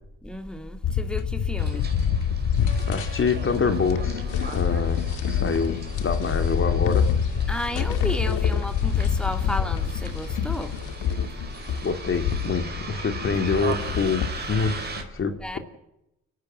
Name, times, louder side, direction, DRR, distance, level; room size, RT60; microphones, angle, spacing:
voice 1, 0.2-1.9 7.5-10.7 15.4-15.6, left 1 dB, 5° left, 2.9 m, -33 dB
sound 1, 0.8-15.0, left 7 dB, 80° left, 2.2 m, -26 dB
Bus, 1.6-15.0, right 4 dB, 35° right, 5.0 m, -39 dB
voice 2, 2.9-4.2 4.5-5.0 5.3-7.1 11.8-15.6, left 5 dB, 45° left, 2.5 m, -26 dB
29.5 x 12.0 x 9.1 m
cardioid pair, 90°, 30 cm